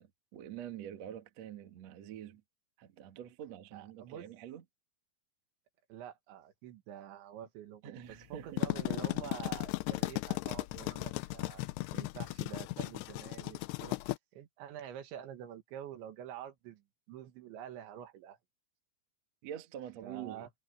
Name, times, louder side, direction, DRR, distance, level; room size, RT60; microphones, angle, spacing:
voice 1, 0.0-2.4 2.8-4.6 7.8-8.7 19.4-20.5, right 10 dB, 55° right, 1.9 m, -46 dB
voice 2, 3.7-4.3 5.9-11.6 11.9-14.0 14.3-18.4 20.0-20.5, right 10 dB, 75° right, 3.9 m, -47 dB
sound 1, 8.4-14.2, left 21 dB, 85° left, 2.4 m, -36 dB
omnidirectional pair, 5.4 m